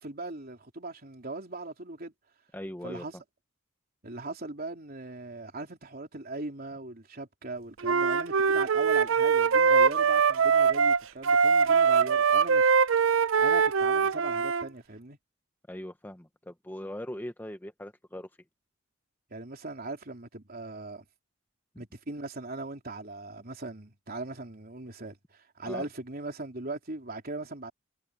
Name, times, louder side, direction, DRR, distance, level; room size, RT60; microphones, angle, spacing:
voice 1, 0.0-2.1 2.8-3.1 4.0-12.8 13.4-15.2 19.3-21.1 21.8-27.7, right 2 dB, 45° right, 3.5 m, -39 dB
voice 2, 2.5-3.1 15.7-18.3 25.7-25.9, left 1 dB, 10° left, 0.9 m, -40 dB
Wind instrument woodwind instrument, 7.8-14.7, right 6 dB, 65° right, 0.5 m, -23 dB
head